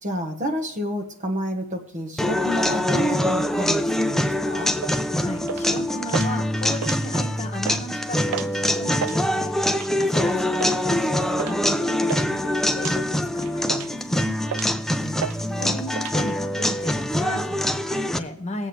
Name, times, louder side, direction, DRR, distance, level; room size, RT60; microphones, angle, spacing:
voice 1, 0.0-4.7 14.9-15.8, equal, 35° right, 5 dB, 1.3 m, -29 dB
sound 1, 2.2-18.2, left 1 dB, ahead, 0.5 m, -24 dB
sound 2, 4.8-5.0 5.5-5.8 6.1-6.3 6.7-7.3 7.6-7.8 8.3-8.6 8.9-9.2 9.7-10.0 10.6-10.8 11.4-11.6 11.8-12.3 12.8-13.0 13.4-14.0 14.5-14.8 15.2-15.4 15.6-16.2, right 8 dB, 70° right, 0.4 m, -32 dB
voice 2, 5.2-14.8 15.6-18.7, left 1 dB, 30° left, 4 dB, 1.4 m, -35 dB
20.0 x 7.6 x 3.2 m, 0.77 s
head